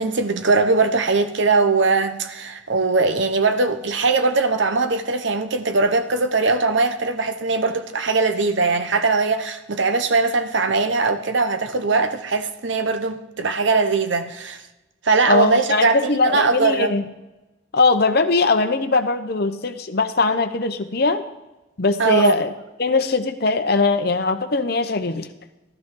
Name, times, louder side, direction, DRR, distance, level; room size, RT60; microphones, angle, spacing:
voice 1, 0.0-14.6 15.0-16.9 22.0-22.3, right 3 dB, 65° right, 0.9 m, -20 dB
voice 2, 15.3-17.0 17.7-21.2 21.8-22.5 22.8-25.3, left 3 dB, 50° left, 0.8 m, -20 dB
13.0 x 12.5 x 3.8 m
head